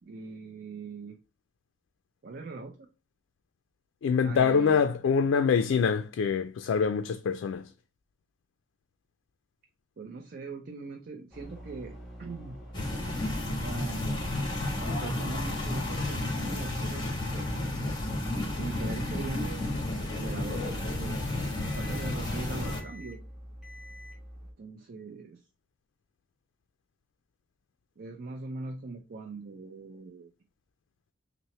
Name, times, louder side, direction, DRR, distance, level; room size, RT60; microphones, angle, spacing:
voice 1, 0.0-1.2 2.2-2.9 4.2-4.9 10.0-12.6 13.6-14.3 14.7-17.5 18.5-19.6 20.2-21.2 21.7-23.2 24.6-25.4 28.0-30.3, right 3 dB, 50° right, 0.5 m, -41 dB
voice 2, 4.0-7.7, left 6 dB, 80° left, 0.3 m, -25 dB
sound 1, 11.3-24.5, equal, ahead, 1.1 m, -46 dB
sound 2, 12.7-22.8, left 1 dB, 25° left, 1.1 m, -32 dB
5.5 x 2.0 x 3.0 m
head